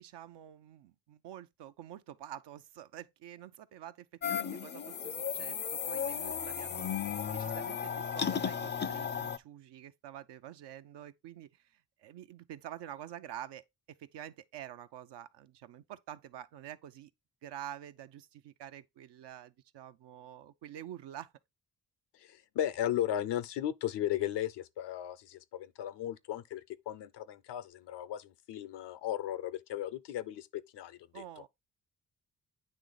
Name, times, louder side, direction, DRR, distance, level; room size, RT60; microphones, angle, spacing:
voice 1, 0.0-6.9 7.2-17.1 17.4-21.3 31.1-31.5, right 11 dB, 80° right, 0.6 m, -48 dB
sound 1, 4.2-9.4, left 7 dB, 25° left, 0.4 m, -35 dB
voice 2, 22.2-31.2, left 11 dB, 75° left, 0.6 m, -36 dB
8.9 x 3.1 x 3.9 m
supercardioid pair, 40°, 42 cm